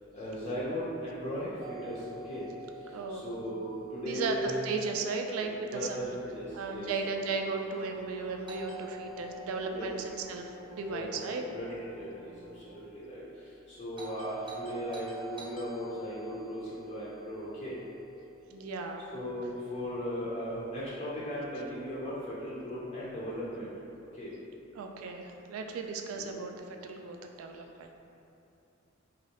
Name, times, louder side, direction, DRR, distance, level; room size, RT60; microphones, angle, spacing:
voice 1, 0.1-2.4 3.1-4.5 5.7-6.1 6.3-6.9 9.7-9.9 10.9-13.2 13.7-17.7 19.1-22.1 22.4-23.7 24.1-24.3 26.2-26.3, equal, 35° left, -9 dB, 0.4 m, -37 dB
Doorbell, 1.6-5.6 8.5-12.7 13.9-18.4, right 3 dB, 25° right, 0.6 m, -48 dB
voice 2, 2.9-3.2 4.0-6.0 6.5-11.4 18.5-19.1 24.8-27.9, right 4 dB, 85° right, 3 dB, 0.3 m, -35 dB
sound 1, 5.8-12.8, equal, 75° left, 0.8 m, -53 dB
3.0 x 2.4 x 2.8 m, 2.8 s
head